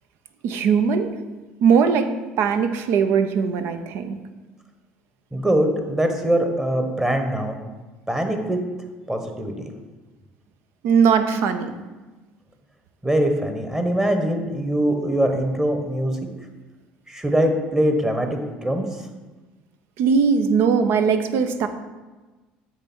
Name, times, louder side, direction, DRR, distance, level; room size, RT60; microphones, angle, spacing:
voice 1, 0.4-1.1 1.6-4.2 10.8-11.7 20.0-21.7, right 6 dB, 65° right, 9 dB, 0.6 m, -20 dB
voice 2, 5.3-7.6 8.1-8.6 9.1-9.7 13.0-16.2 17.1-18.8, right 1 dB, 10° right, 5 dB, 1.1 m, -22 dB
8.1 x 3.3 x 6.1 m, 1.2 s
hypercardioid pair, 70°, 4 cm